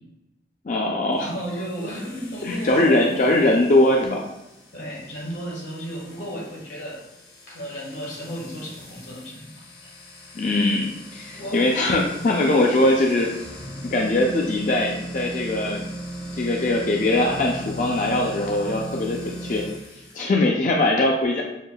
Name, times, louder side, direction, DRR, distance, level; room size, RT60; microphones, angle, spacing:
voice 1, 0.6-1.3 2.4-4.2 10.3-13.3 13.8-15.9 16.3-19.7 20.1-21.4, left 2 dB, 45° left, 0 dB, 0.4 m, -21 dB
sound 1, 1.1-20.2, equal, 60° left, 0.8 m, -39 dB
voice 2, 1.2-3.5 4.7-7.1 7.5-9.9 11.3-11.7 12.1-12.4, equal, 90° left, -3 dB, 1.5 m, -34 dB
6.4 x 2.6 x 2.2 m, 0.90 s
head